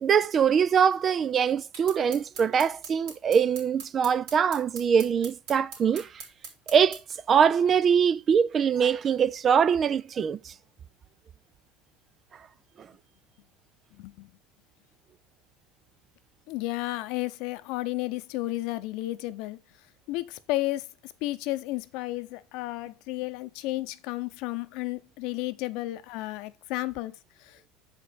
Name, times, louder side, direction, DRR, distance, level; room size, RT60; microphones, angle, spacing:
voice 1, 0.0-6.2 6.7-7.0 7.3-10.5 12.8-12.9, right 7 dB, 35° right, 0.4 m, -23 dB
sound 1, 1.7-7.0, right 5 dB, 75° right, 3.5 m, -42 dB
voice 2, 14.0-14.3 16.5-19.6 20.1-27.7, left 18 dB, 65° left, 0.7 m, -33 dB
7.4 x 5.2 x 4.0 m
supercardioid pair, 95°, 0 cm